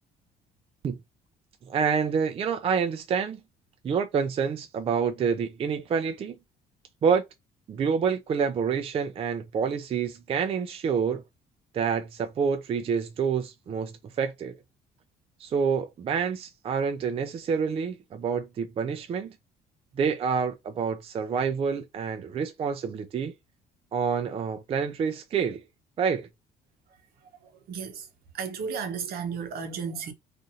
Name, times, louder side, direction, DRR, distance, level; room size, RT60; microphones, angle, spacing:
voice 1, 1.7-3.4 3.8-6.4 7.0-7.2 7.7-11.2 11.7-13.9 14.2-14.5 15.4-19.3 20.0-23.3 23.9-25.6 26.0-26.3, right 6 dB, 35° right, 0.4 m, -27 dB
voice 2, 27.7-28.0 28.3-30.1, right 6 dB, 65° right, 0.8 m, -33 dB
2.5 x 2.5 x 2.7 m
cardioid pair, 110°, 17 cm